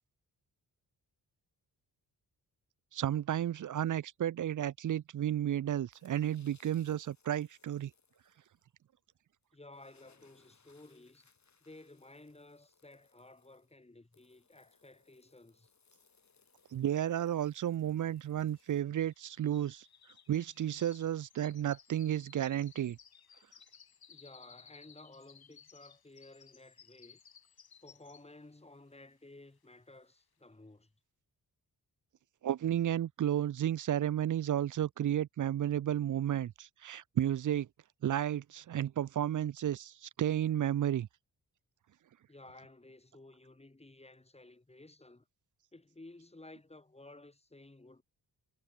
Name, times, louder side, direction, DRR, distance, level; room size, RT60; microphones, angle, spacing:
voice 1, 2.9-7.9 16.7-19.9 20.3-23.0 32.4-37.7 38.0-41.1, right 11 dB, 50° right, 0.5 m, -32 dB
sound 1, 5.9-8.6 9.4-9.5 9.7-18.8, left 5 dB, 45° left, 6.9 m, -69 dB
voice 2, 9.5-11.3 11.6-15.7 24.1-27.2 27.8-30.9 42.3-45.2 45.7-48.0, left 2 dB, 15° left, 3.0 m, -55 dB
sound 2, 16.8-16.9 17.1-28.5 28.9-29.2 29.7-29.8, left 7 dB, 60° left, 5.0 m, -60 dB
cardioid pair, 95°, 41 cm